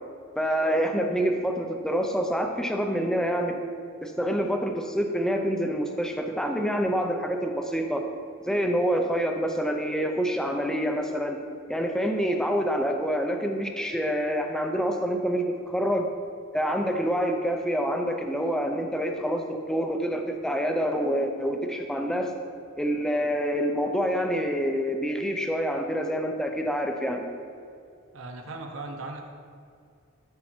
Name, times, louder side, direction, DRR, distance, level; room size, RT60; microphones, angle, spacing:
voice 1, 0.4-3.6 4.0-8.1 8.4-11.4 11.7-16.1 16.5-22.3 22.8-27.3, equal, 5° left, 3 dB, 0.6 m, -27 dB
voice 2, 28.1-29.3, right 2 dB, 75° right, 3 dB, 1.0 m, -38 dB
13.0 x 4.6 x 4.5 m, 2.4 s
head